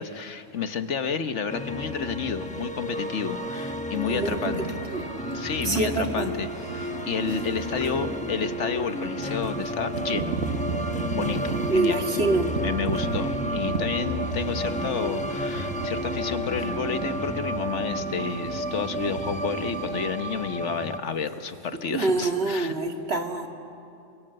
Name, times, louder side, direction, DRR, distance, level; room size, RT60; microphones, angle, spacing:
voice 1, 0.0-4.8 5.3-10.5 11.1-12.2 12.6-22.7, left 6 dB, 70° left, 9 dB, 1.4 m, -30 dB
sound 1, 1.5-21.0, left 1 dB, 5° left, 1.0 m, -32 dB
voice 2, 4.1-5.0 5.6-6.3 6.8-6.9 11.7-12.5 21.9-23.5, right 3 dB, 55° right, 3 dB, 2.2 m, -26 dB
sound 2, 4.1-20.1, right 6 dB, 70° right, 1.3 m, -35 dB
27.5 x 25.0 x 7.7 m, 2.7 s
omnidirectional pair, 1.3 m